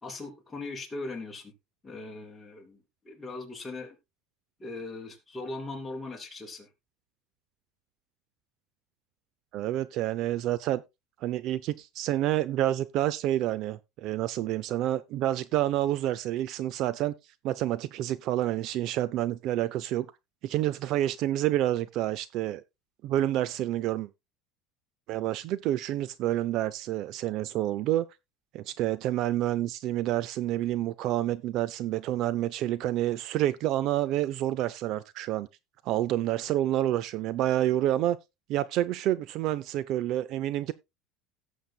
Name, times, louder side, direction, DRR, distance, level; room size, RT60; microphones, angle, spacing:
voice 1, 0.0-1.5 1.8-2.8 3.0-4.0 4.6-6.7, left 2 dB, 10° left, 2.6 m, -39 dB
voice 2, 9.5-10.8 11.2-17.1 17.4-20.1 20.4-22.6 23.0-24.1 25.1-28.1 28.5-35.5 35.8-38.2 38.5-40.7, right 13 dB, 45° right, 0.5 m, -28 dB
17.5 x 7.1 x 2.3 m
cardioid pair, 160°, 0 cm